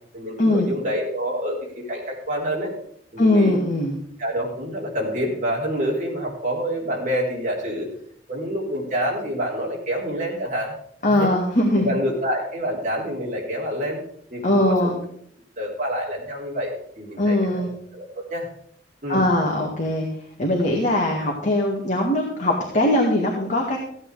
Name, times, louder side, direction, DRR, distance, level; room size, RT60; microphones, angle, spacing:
voice 1, 0.1-2.7 3.1-3.6 4.2-7.9 8.3-10.7 11.0-11.3 11.7-14.0 14.3-14.9 15.6-17.7 17.9-18.5 19.0-19.2, equal, 45° right, -2 dB, 3.7 m, -27 dB
voice 2, 3.2-4.0 11.0-11.9 14.4-15.0 17.2-17.7 19.1-20.1 20.4-23.8, left 1 dB, 45° left, -1 dB, 2.0 m, -20 dB
15.0 x 8.8 x 4.8 m, 0.64 s
head